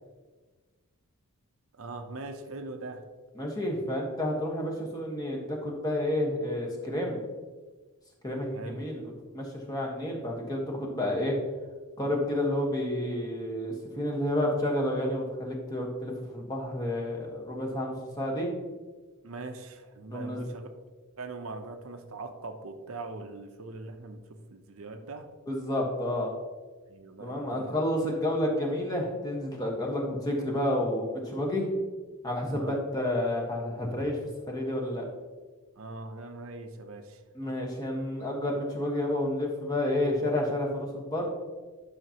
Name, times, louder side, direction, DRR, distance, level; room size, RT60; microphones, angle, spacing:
voice 1, 1.8-3.0 8.5-8.8 19.2-20.7 21.2-25.3 26.9-27.7 32.4-32.8 35.8-37.2, right 3 dB, 65° right, 6 dB, 0.7 m, -41 dB
voice 2, 3.4-7.2 8.2-9.0 9.3-11.3 12.0-18.5 20.1-20.4 25.5-26.3 27.2-31.7 32.2-34.2 34.5-35.1 37.3-41.3, left 1 dB, 15° left, -1 dB, 1.3 m, -30 dB
11.0 x 5.7 x 2.9 m, 1.3 s
head